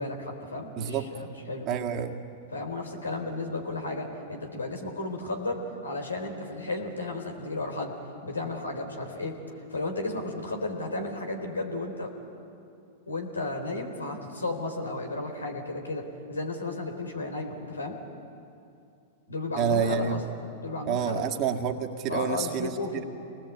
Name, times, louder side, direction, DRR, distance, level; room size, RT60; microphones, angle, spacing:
voice 1, 0.0-1.7 2.5-7.9 8.2-9.4 9.7-12.1 13.1-18.0 19.3-20.2 20.6-21.3 22.1-23.0, left 2 dB, 85° left, 3 dB, 3.8 m, -33 dB
voice 2, 0.8-1.1 1.7-2.2 19.6-20.2 20.9-22.7, right 7 dB, 40° right, 4 dB, 2.0 m, -28 dB
28.0 x 20.0 x 8.5 m, 2.5 s
figure-of-eight pair, 100°, 0 cm